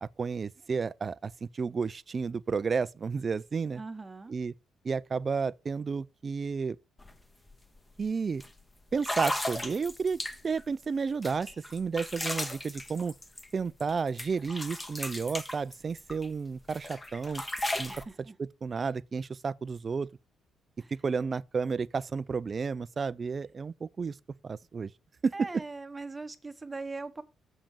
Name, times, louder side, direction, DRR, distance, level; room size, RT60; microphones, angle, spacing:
voice 1, 0.0-3.8 4.3-4.5 4.8-6.8 8.0-8.4 8.9-10.2 10.4-13.1 13.5-17.4 17.8-17.9 18.4-20.1 20.9-24.2 24.4-24.9 25.2-25.3, right 5 dB, 30° right, 0.4 m, -32 dB
voice 2, 3.8-4.4 17.8-18.4 20.8-20.9 25.3-27.2, right 3 dB, 15° right, 0.9 m, -40 dB
sound 1, 7.0-7.1 7.5-7.8 8.4-8.5 9.0-10.6 11.2-13.9 14.2-16.3 16.7-18.0, left 1 dB, 15° left, 1.0 m, -36 dB
7.3 x 5.2 x 7.3 m
cardioid pair, 140°, 0 cm